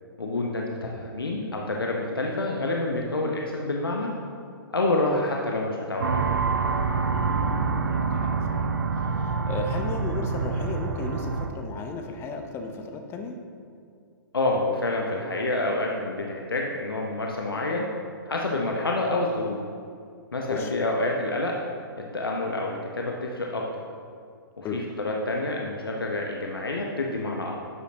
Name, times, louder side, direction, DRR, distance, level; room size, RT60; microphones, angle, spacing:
voice 1, 0.2-4.1 4.7-6.4 14.3-17.9 18.3-19.6 20.3-21.6 22.0-23.7 24.6-27.6, left 2 dB, 75° left, -1 dB, 1.1 m, -28 dB
sound 1, 6.0-11.5, right 4 dB, 65° right, 0.8 m, -26 dB
voice 2, 7.1-13.4 20.5-20.7 24.6-24.8, left 4 dB, 20° left, 4 dB, 0.8 m, -35 dB
11.0 x 8.2 x 2.9 m, 2.3 s
figure-of-eight pair, 120°, 12 cm